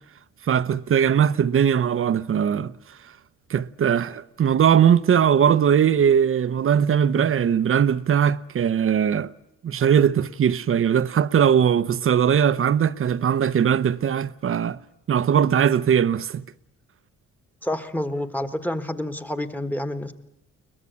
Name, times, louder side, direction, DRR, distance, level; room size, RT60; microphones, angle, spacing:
voice 1, 0.4-2.7 3.5-9.3 9.6-14.8 15.1-16.4, right 8 dB, 45° right, 0.8 m, -20 dB
voice 2, 17.6-20.1, left 1 dB, 5° left, 1.6 m, -28 dB
22.5 x 20.5 x 8.2 m
cardioid pair, 90°, 30 cm